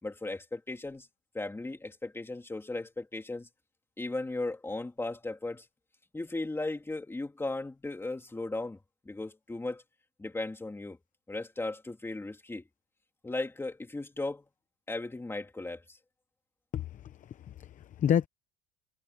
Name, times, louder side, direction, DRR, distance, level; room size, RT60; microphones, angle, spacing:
voice 1, 0.0-1.1 1.3-3.5 4.0-5.6 6.1-8.8 9.0-9.8 10.2-11.0 11.3-12.6 13.2-14.4 14.9-16.0, left 2 dB, 10° left, 3.1 m, -36 dB
voice 2, 16.7-18.3, left 9 dB, 25° left, 0.7 m, -30 dB
cardioid pair, 160°, 31 cm